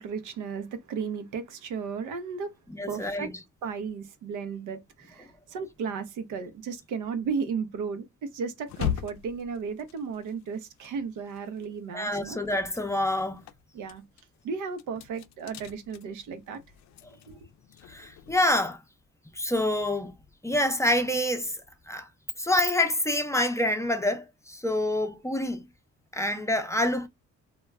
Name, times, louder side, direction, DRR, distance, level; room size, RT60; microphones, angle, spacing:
voice 1, 0.0-2.6 2.9-3.3 3.6-12.4 13.7-14.0 14.4-16.6 17.3-17.4, right 5 dB, 80° right, 0.6 m, -34 dB
voice 2, 2.7-3.3 11.9-13.4 17.9-18.8 19.3-20.2 20.4-21.6 21.9-22.1 22.4-25.7 26.1-27.1, left 1 dB, 10° left, 0.5 m, -27 dB
sound 1, 8.7-11.7 12.0-18.4, left 10 dB, 65° left, 0.4 m, -40 dB
2.2 x 2.1 x 3.4 m
cardioid pair, 90°, 30 cm